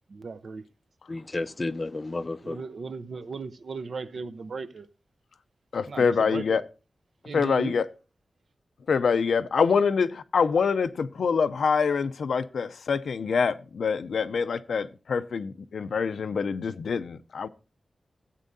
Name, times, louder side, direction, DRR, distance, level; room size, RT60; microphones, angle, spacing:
voice 1, 0.1-0.7 2.4-4.9 5.9-6.4 7.2-7.8, right 4 dB, 65° right, 0.6 m, -36 dB
voice 2, 1.1-2.6, left 2 dB, 30° left, 0.4 m, -32 dB
voice 3, 5.7-6.6 7.3-7.9 8.9-17.5, left 5 dB, 90° left, 0.5 m, -25 dB
14.0 x 8.3 x 2.6 m
wide cardioid pair, 110°, 0 cm